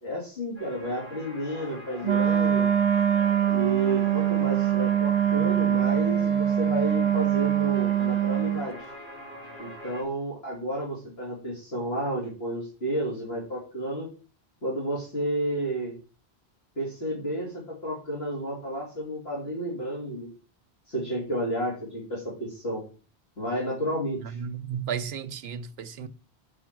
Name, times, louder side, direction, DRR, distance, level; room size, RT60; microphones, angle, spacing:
voice 1, 0.0-2.7 3.5-8.9 9.6-14.1 14.6-16.0 16.8-20.3 20.9-22.8 23.4-24.4, right 1 dB, 70° left, 3.1 m, -31 dB
sound 1, 0.6-10.0, left 1 dB, 50° left, 3.5 m, -42 dB
Wind instrument woodwind instrument, 2.0-8.7, right 10 dB, 50° right, 0.5 m, -23 dB
voice 2, 24.4-26.1, right 7 dB, 70° right, 0.9 m, -33 dB
6.5 x 6.0 x 6.0 m
omnidirectional pair, 1.1 m